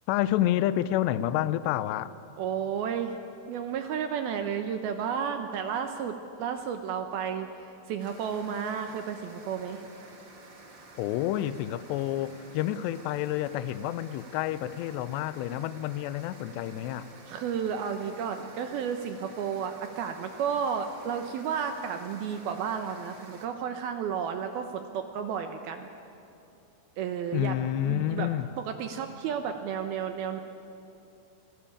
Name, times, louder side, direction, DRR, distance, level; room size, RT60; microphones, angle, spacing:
voice 1, 0.1-2.1 11.0-17.1 27.3-28.5, left 13 dB, 90° left, 14 dB, 2.4 m, -29 dB
voice 2, 2.4-3.1 3.5-9.8 17.3-25.9 27.0-28.3 28.6-30.4, right 7 dB, 80° right, 6 dB, 2.2 m, -32 dB
sound 1, 8.0-23.5, right 2 dB, 35° right, 2.0 m, -51 dB
28.0 x 19.0 x 8.7 m, 2.9 s
omnidirectional pair, 5.7 m